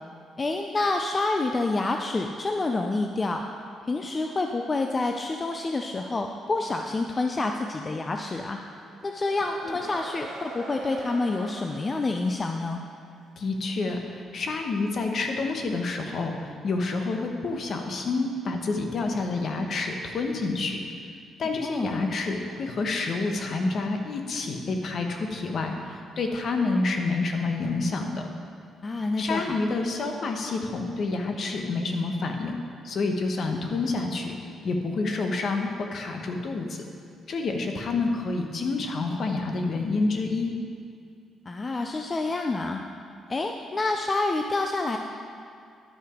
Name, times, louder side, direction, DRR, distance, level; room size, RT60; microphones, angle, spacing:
voice 1, 0.4-3.4 3.9-8.6 9.0-12.8 21.6-22.1 28.8-29.6 41.5-42.8 43.3-45.0, left 3 dB, 30° left, 4 dB, 0.5 m, -28 dB
sound 1, 8.7-13.2, right 3 dB, 80° right, 1.6 m, -43 dB
voice 2, 13.4-20.8 21.4-28.3 29.2-32.6 32.8-34.4 34.6-36.8 37.3-40.5, left 3 dB, 55° left, 4 dB, 1.1 m, -28 dB
11.0 x 5.7 x 5.0 m, 2.4 s
cardioid pair, 90°, 0 cm